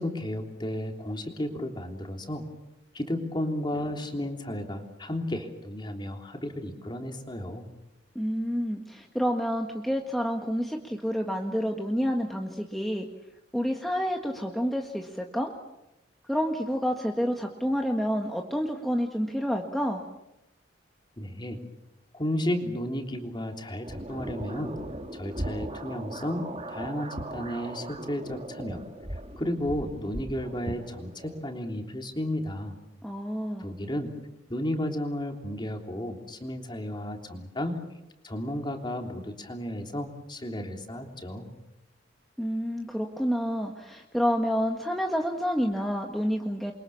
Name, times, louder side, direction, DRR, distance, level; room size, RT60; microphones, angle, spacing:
voice 1, 0.0-2.4 2.9-7.7 21.2-21.6 22.1-24.8 25.1-28.8 29.4-32.7 33.6-34.1 34.5-37.8 38.2-41.5, left 1 dB, 25° left, 3 dB, 3.4 m, -33 dB
voice 2, 8.2-13.1 13.5-15.5 16.3-20.0 33.0-33.7 42.4-46.7, equal, ahead, 1 dB, 1.8 m, -29 dB
sound 1, 23.8-31.4, right 1 dB, 30° right, 2.2 m, -38 dB
29.0 x 24.0 x 7.2 m, 0.90 s
head